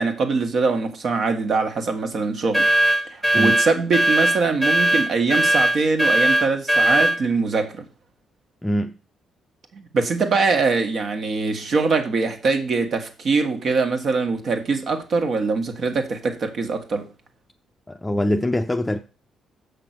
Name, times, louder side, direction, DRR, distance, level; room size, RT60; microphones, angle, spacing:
voice 1, 0.0-2.7 3.1-7.8 9.7-17.1, right 4 dB, 55° right, 1.6 m, -23 dB
sound 1, 2.5-7.2, right 1 dB, 5° right, 1.2 m, -19 dB
voice 2, 8.6-9.0 17.9-19.0, left 1 dB, 15° left, 0.6 m, -23 dB
7.0 x 5.9 x 6.0 m
cardioid pair, 90°, 0 cm